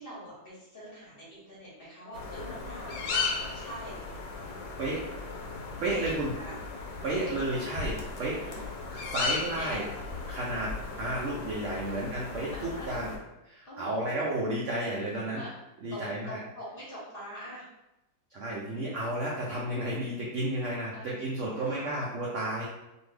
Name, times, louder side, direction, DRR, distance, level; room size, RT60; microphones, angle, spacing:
voice 1, 0.0-3.9 5.9-6.5 7.1-7.3 8.2-8.7 9.2-9.9 11.9-12.1 12.5-12.9 13.6-14.1 15.1-15.5 15.9-17.7 20.9-21.1 21.5-21.9, equal, 45° left, -7 dB, 0.8 m, -44 dB
sound 1, 2.1-13.2, left 4 dB, 85° left, 1.3 m, -36 dB
voice 2, 5.8-6.3 7.0-8.4 8.9-9.9 10.3-10.7 11.0-13.1 13.5-15.4 15.8-16.4 18.3-22.6, right 1 dB, 80° right, -4 dB, 0.6 m, -32 dB
2.6 x 2.6 x 3.3 m, 0.94 s
omnidirectional pair, 1.9 m